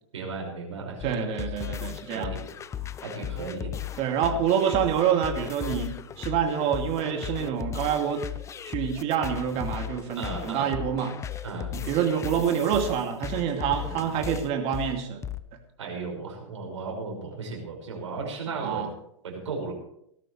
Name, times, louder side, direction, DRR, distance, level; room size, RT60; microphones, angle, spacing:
voice 1, 0.1-1.3 2.1-2.4 3.0-4.0 10.2-10.7 11.4-11.7 13.7-14.0 15.8-18.9 19.2-19.7, right 4 dB, 70° right, 0 dB, 5.7 m, -35 dB
sound 1, 1.0-15.4, left 10 dB, 20° left, 0.6 m, -36 dB
voice 2, 1.0-2.3 4.0-8.2 8.7-11.1 11.7-15.2 18.5-18.9, right 8 dB, 40° right, 4 dB, 2.5 m, -27 dB
18.5 x 13.5 x 3.3 m, 0.72 s
hypercardioid pair, 105°, 16 cm